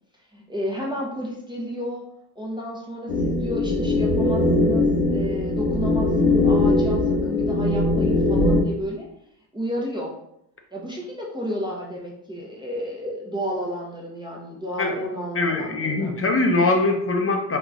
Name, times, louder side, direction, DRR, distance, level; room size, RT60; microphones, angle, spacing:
voice 1, 0.3-2.0 2.4-9.1 9.5-10.1 10.7-16.1, equal, 10° right, -3 dB, 0.8 m, -31 dB
sound 1, 3.1-8.6, left 2 dB, 65° left, 0.8 m, -20 dB
voice 2, 15.4-17.6, left 2 dB, 30° left, 3 dB, 0.6 m, -22 dB
3.8 x 2.1 x 2.4 m, 0.77 s
hypercardioid pair, 45°, 49 cm